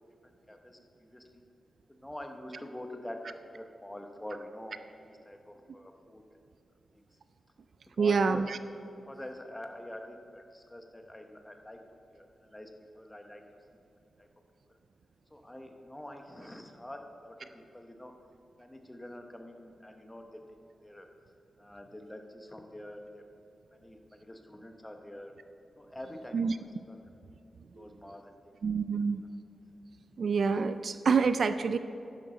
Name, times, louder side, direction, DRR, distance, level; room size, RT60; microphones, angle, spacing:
voice 1, 0.2-1.4 1.9-3.2 3.5-4.8 5.0-6.2 6.9-7.1 7.9-8.5 9.1-11.8 12.1-12.7 12.9-13.4 14.2-14.3 14.7-14.8 15.3-18.1 18.6-20.4 20.8-21.1 21.6-23.2 23.7-25.3 25.8-26.4 26.9-27.0 27.6-28.4 28.9-29.0, left 1 dB, 10° left, 4 dB, 0.9 m, -46 dB
voice 2, 8.0-8.6 26.3-26.6 27.8-27.9 28.6-29.2 30.2-31.8, right 5 dB, 55° right, 11 dB, 0.3 m, -27 dB
11.5 x 10.0 x 3.9 m, 2.7 s
wide cardioid pair, 140°, 0 cm